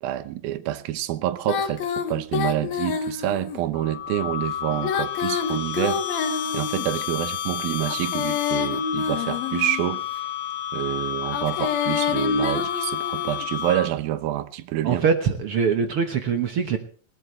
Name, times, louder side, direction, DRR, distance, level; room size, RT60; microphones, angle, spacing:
voice 1, 0.0-6.0 6.5-10.3 10.7-15.1, right 13 dB, 85° right, 2.7 m, -27 dB
Female singing, 1.5-3.6 4.7-7.0 7.8-10.0 11.2-13.5, left 6 dB, 90° left, 3.5 m, -28 dB
sound 1, 3.7-14.1, left 10 dB, 75° left, 2.6 m, -30 dB
voice 2, 14.8-16.8, right 6 dB, 70° right, 1.3 m, -23 dB
20.0 x 18.5 x 3.2 m
omnidirectional pair, 4.1 m